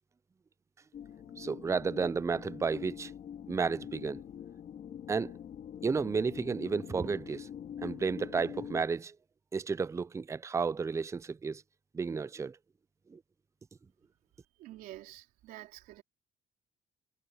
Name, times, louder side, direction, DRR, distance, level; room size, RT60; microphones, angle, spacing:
sound 1, 0.9-8.8, left 9 dB, 60° left, 2.4 m, -45 dB
voice 1, 1.4-3.1 3.5-4.2 5.1-5.4 5.8-7.5 7.8-9.2 9.5-11.6 11.9-12.6 13.1-13.2, right 5 dB, 20° right, 0.5 m, -32 dB
voice 2, 14.6-16.0, right 15 dB, 80° right, 3.6 m, -48 dB
cardioid pair, 90°, 15 cm